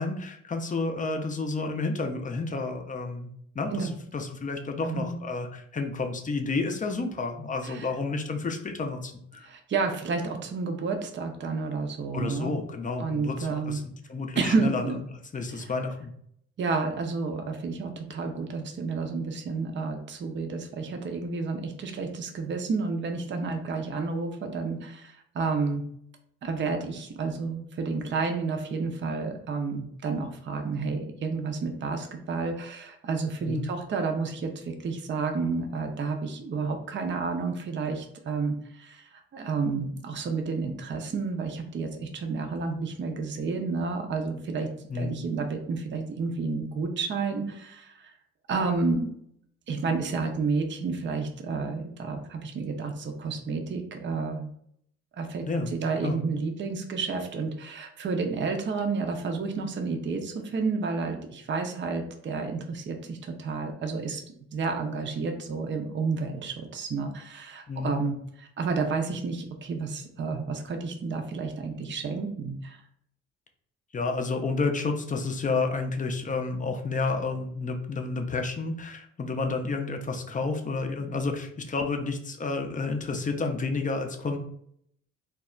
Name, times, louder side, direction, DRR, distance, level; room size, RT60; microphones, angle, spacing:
voice 1, 0.0-9.5 12.1-15.0 15.3-16.1 33.4-33.6 44.9-45.2 55.5-55.7 56.0-56.2 67.7-68.0 73.9-84.4, left 3 dB, 25° left, 4 dB, 0.5 m, -30 dB
voice 2, 4.8-5.2 7.6-7.9 9.4-12.6 13.0-13.8 14.4-15.0 15.5-15.7 16.6-25.8 26.4-44.7 44.9-48.1 48.5-49.1 49.7-54.5 55.2-55.4 55.7-64.2 64.5-72.8, right 4 dB, 35° right, 4 dB, 0.6 m, -30 dB
2.2 x 2.0 x 3.7 m, 0.69 s
hypercardioid pair, 55°, 35 cm